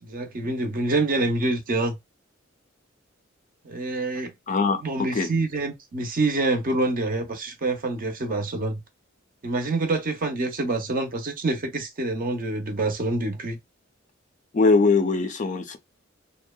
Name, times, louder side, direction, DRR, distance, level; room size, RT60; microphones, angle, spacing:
voice 1, 0.0-2.0 3.6-4.3 4.8-8.8 9.4-13.6, right 2 dB, 45° right, 0.6 m, -26 dB
voice 2, 4.5-5.3 14.5-15.8, left 4 dB, 40° left, 0.4 m, -22 dB
2.7 x 2.1 x 2.2 m
head